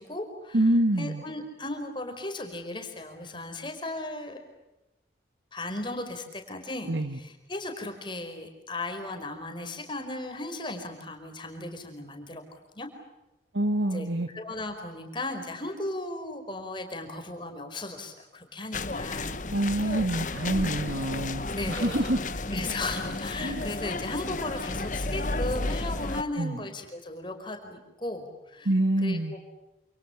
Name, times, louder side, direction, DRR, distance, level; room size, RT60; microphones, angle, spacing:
voice 1, 0.0-0.6 1.0-4.4 5.5-12.4 12.7-12.9 13.9-14.1 14.3-19.4 19.8-20.0 21.5-22.0 22.5-28.7 29.0-29.4, left 2 dB, 25° left, 4 dB, 5.0 m, -36 dB
voice 2, 0.5-1.2 6.9-7.2 13.5-14.3 19.5-22.2 23.4-23.6 26.4-26.6 28.7-29.4, right 1 dB, 80° right, 9 dB, 1.8 m, -26 dB
sound 1, 18.7-26.2, left 2 dB, 45° left, 1.2 m, -32 dB
28.5 x 28.5 x 7.2 m, 1.0 s
head